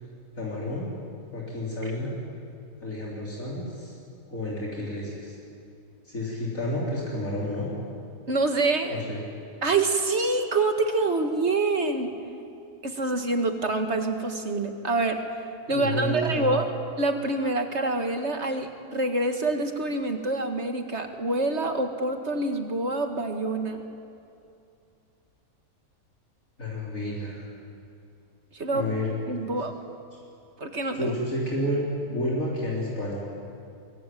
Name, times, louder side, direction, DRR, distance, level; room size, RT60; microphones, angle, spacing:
voice 1, 0.3-0.9 1.3-2.1 2.8-4.0 4.3-5.4 6.0-7.7 8.9-9.2 15.7-16.6 26.6-27.5 28.7-29.1 29.4-29.5 30.1-30.2 30.9-33.3, left 1 dB, 60° left, -5 dB, 4.2 m, -30 dB
voice 2, 8.3-9.0 9.6-12.1 12.8-15.2 15.7-16.7 17.0-23.8 28.5-28.8 29.3-29.7 30.6-31.1, right 2 dB, 50° right, 6 dB, 2.1 m, -26 dB
23.5 x 22.0 x 9.3 m, 2.6 s
omnidirectional pair, 1.6 m